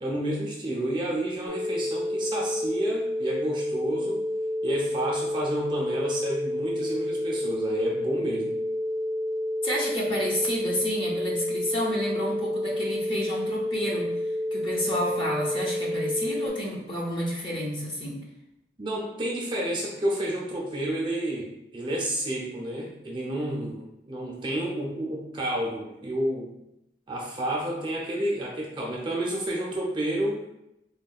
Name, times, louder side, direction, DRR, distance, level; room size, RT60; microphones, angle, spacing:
voice 1, 0.0-4.2 4.6-8.5 18.8-21.5 21.7-26.5 27.1-30.4, right 1 dB, 25° right, -3 dB, 0.5 m, -30 dB
sound 1, 1.5-16.5, left 1 dB, 80° right, 0.4 m, -29 dB
voice 2, 9.6-18.2, equal, 30° left, -4 dB, 0.5 m, -30 dB
3.5 x 2.2 x 2.3 m, 0.85 s
head